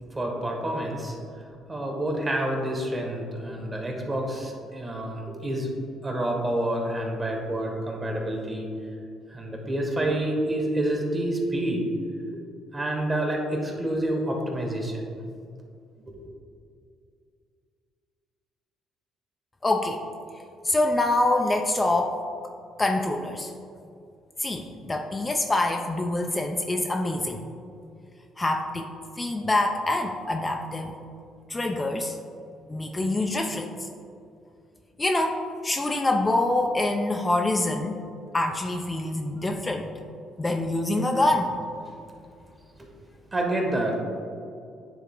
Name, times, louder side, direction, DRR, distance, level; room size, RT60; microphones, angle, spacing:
voice 1, 0.1-1.2 1.7-5.7 6.0-8.7 9.3-12.0 12.3-12.4 12.7-15.0 16.1-16.3 43.3-44.0, right 1 dB, 25° right, 1 dB, 1.5 m, -28 dB
voice 2, 19.6-20.0 20.6-22.2 22.8-23.5 24.4-27.4 28.4-28.9 29.2-31.0 31.5-32.2 32.7-33.9 35.0-38.0 38.3-39.9 40.4-41.5, left 2 dB, 20° left, 3 dB, 0.5 m, -25 dB
9.4 x 3.5 x 3.8 m, 2.4 s
supercardioid pair, 65°, 0 cm